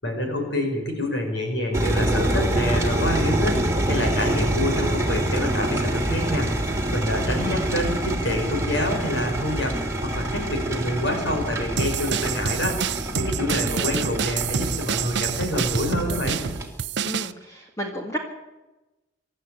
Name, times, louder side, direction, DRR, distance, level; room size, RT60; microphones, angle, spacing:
voice 1, 0.0-6.6 6.9-9.8 10.0-12.8 13.1-16.4, left 1 dB, 70° left, 4 dB, 5.5 m, -27 dB
sound 1, 1.7-16.6, right 1 dB, 15° right, 3.3 m, -26 dB
voice 2, 7.1-7.6 13.4-13.9 17.0-18.2, equal, 15° left, 0 dB, 2.0 m, -34 dB
sound 2, 11.8-17.3, right 7 dB, 60° right, 0.6 m, -28 dB
27.0 x 12.5 x 8.4 m, 1.1 s
head